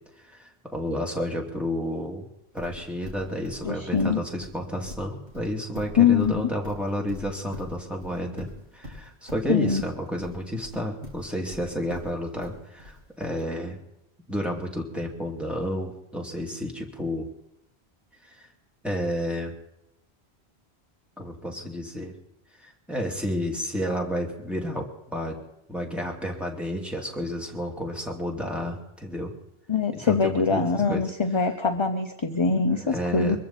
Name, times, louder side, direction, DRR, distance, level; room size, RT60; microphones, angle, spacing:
voice 1, 0.3-2.3 2.5-8.5 8.7-13.8 14.3-17.3 18.2-18.5 18.8-19.5 21.2-22.1 22.6-25.4 25.7-29.3 29.9-31.0 32.3-33.4, equal, ahead, -1 dB, 2.5 m, -31 dB
Livestock farm animals working animals, 2.6-13.4, left 1 dB, 60° right, 5.2 m, -43 dB
voice 2, 3.6-4.2 6.0-6.5 9.5-9.8 29.7-33.4, left 5 dB, 30° left, 7 dB, 0.7 m, -23 dB
23.0 x 14.0 x 4.2 m, 0.85 s
omnidirectional pair, 1.1 m